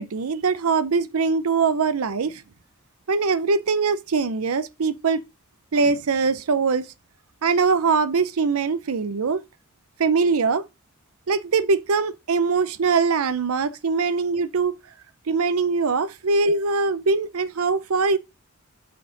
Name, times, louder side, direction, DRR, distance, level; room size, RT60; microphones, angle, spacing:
voice 1, 0.0-2.4 3.1-5.2 5.7-6.9 7.4-9.4 10.0-10.7 11.3-14.7 15.3-18.2, right 4 dB, 75° right, 0.6 m, -22 dB
7.6 x 6.3 x 3.9 m
head